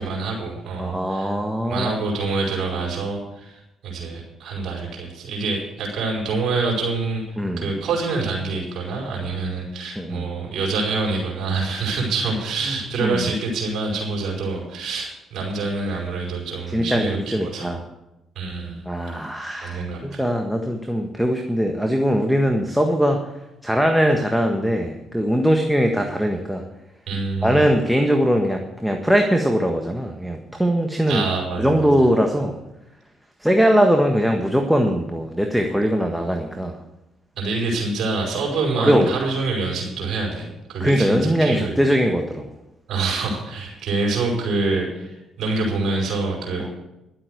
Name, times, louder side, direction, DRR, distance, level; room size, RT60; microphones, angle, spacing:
voice 1, 0.0-1.3 1.7-7.2 7.6-17.8 18.4-18.9 19.6-20.2 27.1-27.7 31.1-32.1 37.3-41.8 42.9-46.7, right 3 dB, 65° right, -2 dB, 5.0 m, -26 dB
voice 2, 0.8-2.0 7.4-7.7 10.0-10.3 13.0-13.3 16.7-17.8 18.9-23.2 23.6-26.6 27.4-31.2 31.6-32.6 33.4-36.7 38.8-39.1 40.8-42.5 46.6-46.7, equal, 5° right, 3 dB, 1.6 m, -21 dB
12.0 x 7.9 x 8.0 m, 0.93 s
hypercardioid pair, 50°, 0 cm